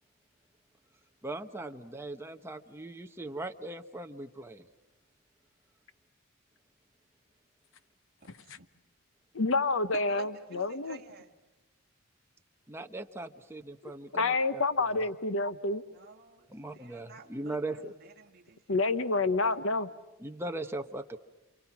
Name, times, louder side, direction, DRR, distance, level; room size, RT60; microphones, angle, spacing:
voice 1, 1.2-4.6 12.7-14.6 14.9-15.0 16.5-17.9 20.2-21.2, right 2 dB, 10° right, 5 dB, 1.0 m, -39 dB
voice 2, 9.3-11.0 14.1-15.8 18.7-19.9, left 3 dB, 65° left, 12 dB, 0.9 m, -28 dB
voice 3, 9.9-11.4 15.9-19.8, right 4 dB, 45° right, 2 dB, 2.4 m, -52 dB
29.0 x 28.5 x 6.0 m, 1.1 s
head